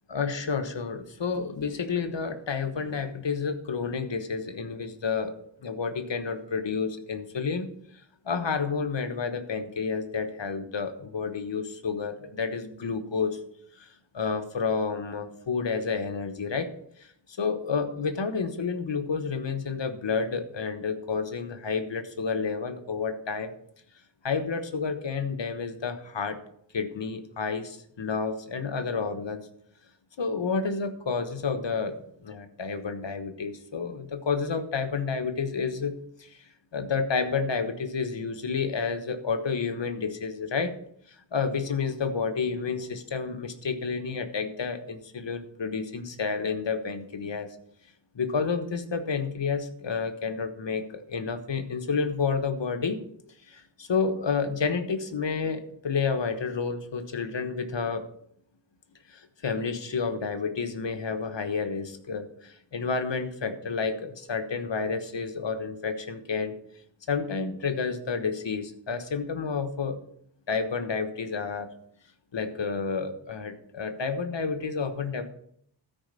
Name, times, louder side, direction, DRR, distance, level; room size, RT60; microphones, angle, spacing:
voice 1, 0.1-5.4 5.6-7.7 8.2-13.4 13.8-16.7 17.0-23.5 24.2-26.4 26.7-29.4 30.2-36.4 36.7-40.7 41.3-47.5 48.1-53.0 53.5-58.1 59.1-66.6 67.1-70.0 70.5-71.7 72.3-75.2, left 5 dB, 75° left, 8 dB, 1.3 m, -30 dB
13.0 x 5.0 x 6.8 m, 0.67 s
cardioid pair, 45°, 44 cm